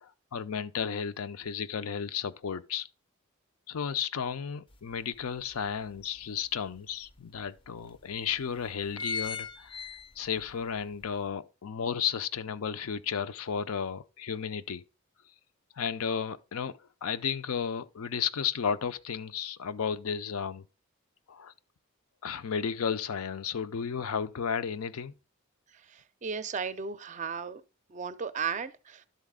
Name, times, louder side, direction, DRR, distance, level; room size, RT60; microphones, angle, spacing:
voice 1, 0.0-2.9 3.7-9.8 10.2-14.8 15.8-20.7 21.3-21.5 22.2-25.1, left 7 dB, 80° left, 0.5 m, -33 dB
sound 1, 4.7-4.8 5.3-6.5 7.1-7.2 7.4-7.5 8.2-8.4 8.7-10.5 10.9-11.0, left 5 dB, 25° left, 0.5 m, -37 dB
voice 2, 26.2-27.6 27.9-28.7, right 6 dB, 35° right, 0.4 m, -34 dB
12.0 x 4.0 x 3.6 m
head